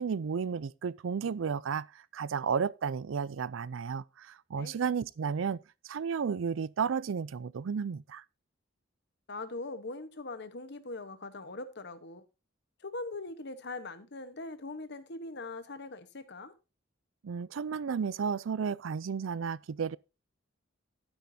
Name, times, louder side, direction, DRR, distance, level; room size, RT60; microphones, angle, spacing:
voice 1, 0.0-1.9 2.1-5.6 5.8-8.2 17.2-20.0, right 6 dB, 80° right, 0.4 m, -33 dB
voice 2, 9.3-12.3 12.8-16.5, left 2 dB, 60° left, 1.1 m, -41 dB
11.5 x 9.8 x 2.8 m
head